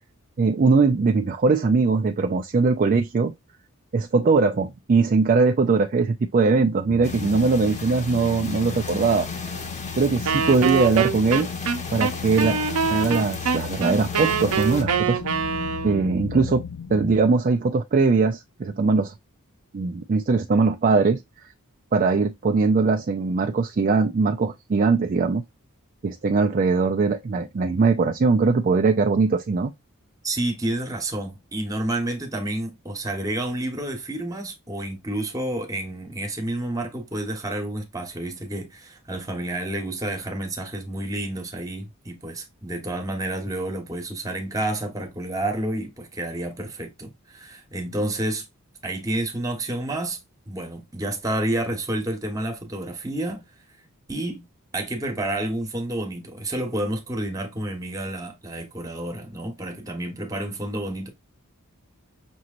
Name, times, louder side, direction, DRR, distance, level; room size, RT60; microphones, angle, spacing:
voice 1, 0.4-3.3 3.9-9.3 10.0-11.5 11.9-12.6 12.9-15.2 15.8-16.6 16.9-19.1 19.7-21.2 21.9-25.4 26.0-29.7, right 4 dB, 35° right, 0.4 m, -21 dB
sound 1, 6.9-17.2, left 6 dB, 85° left, 0.5 m, -35 dB
sound 2, 7.0-14.8, left 3 dB, 30° left, 1.0 m, -37 dB
Wind instrument woodwind instrument, 10.3-16.1, right 6 dB, 75° right, 0.7 m, -25 dB
voice 2, 30.2-48.4 48.8-50.2 50.5-53.4 54.1-54.4 54.7-61.1, right 1 dB, 15° right, 1.1 m, -29 dB
6.1 x 3.0 x 2.4 m
head